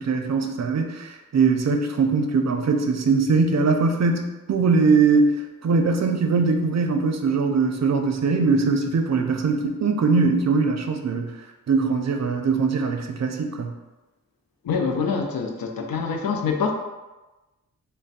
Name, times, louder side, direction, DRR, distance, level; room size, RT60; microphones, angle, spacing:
voice 1, 0.0-5.3 5.6-11.3 11.7-13.7, right 4 dB, 50° right, 4 dB, 0.5 m, -21 dB
voice 2, 14.6-16.7, left 5 dB, 90° left, 3 dB, 0.5 m, -25 dB
3.3 x 2.1 x 4.0 m, 1.1 s
wide cardioid pair, 80°, 34 cm